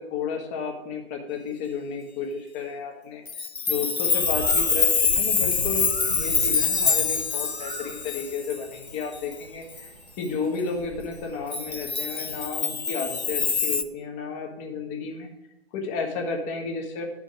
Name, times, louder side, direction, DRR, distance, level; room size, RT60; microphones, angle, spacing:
voice 1, 0.0-3.2 3.7-9.9 10.2-15.3 15.7-17.0, left 5 dB, 25° left, 2 dB, 1.5 m, -32 dB
Chime, 3.3-9.3 9.8-9.9 11.5-13.8, left 5 dB, 80° left, 0.9 m, -25 dB
Bird, 4.0-13.6, right 5 dB, 50° right, 1.0 m, -41 dB
11.5 x 5.2 x 5.0 m, 0.96 s
figure-of-eight pair, 125°, 32 cm